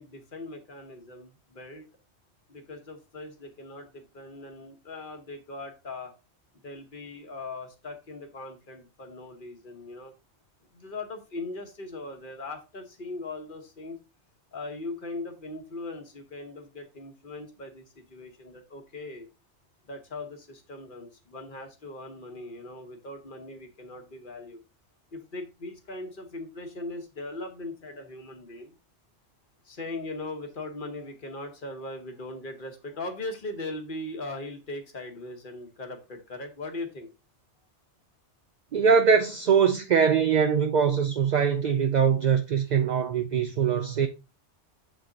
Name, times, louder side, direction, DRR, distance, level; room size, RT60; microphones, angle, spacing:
voice 1, 0.0-1.9 2.5-6.1 6.6-10.1 10.7-14.0 14.5-19.3 19.9-24.6 25.1-28.8 29.6-37.1, left 2 dB, 50° left, 1.2 m, -39 dB
voice 2, 38.7-44.1, right 6 dB, 60° right, 0.5 m, -22 dB
7.3 x 3.6 x 3.8 m
omnidirectional pair, 1.2 m